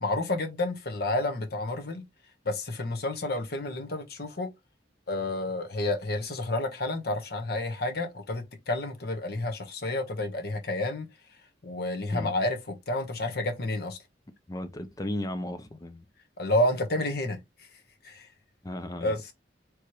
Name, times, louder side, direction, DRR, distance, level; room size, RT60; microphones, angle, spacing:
voice 1, 0.0-2.0 2.4-4.5 5.1-11.1 11.6-14.0 16.4-17.4 18.0-18.3 19.0-19.2, left 1 dB, 55° left, 1.0 m, -30 dB
voice 2, 14.5-16.1 18.6-19.2, left 1 dB, 20° left, 0.5 m, -35 dB
4.7 x 3.2 x 3.0 m
head